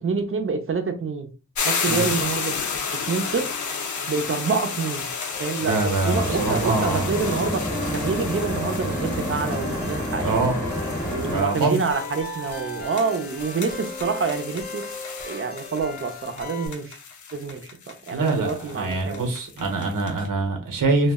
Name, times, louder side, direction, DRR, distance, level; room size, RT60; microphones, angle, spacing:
voice 1, 0.0-1.3 1.6-2.5 3.1-3.5 4.1-5.1 5.4-7.6 7.9-10.5 11.1-17.0 17.3-19.2, right 5 dB, 45° right, 6 dB, 0.5 m, -27 dB
sound 1, 1.5-20.2, left 5 dB, 65° left, 0.5 m, -33 dB
sound 2, 2.3-16.7, left 2 dB, 30° left, 0.6 m, -38 dB
voice 2, 5.6-7.1 8.1-8.3 10.2-10.6 11.2-11.8 18.1-21.1, right 3 dB, 85° right, 3 dB, 0.9 m, -24 dB
sound 3, 6.1-11.4, equal, 10° left, 0.9 m, -29 dB
2.3 x 2.1 x 3.5 m, 0.33 s
wide cardioid pair, 130°, 31 cm